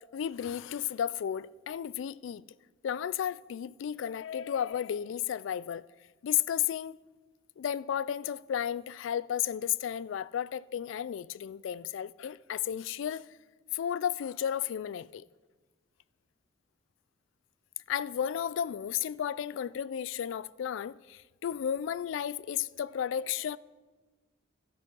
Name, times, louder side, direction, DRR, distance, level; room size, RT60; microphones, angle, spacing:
voice 1, 0.1-2.4 2.8-5.9 6.2-7.0 7.6-13.3 13.7-15.2 17.9-23.6, left 9 dB, 70° left, 0.3 m, -33 dB
12.5 x 7.9 x 5.5 m
head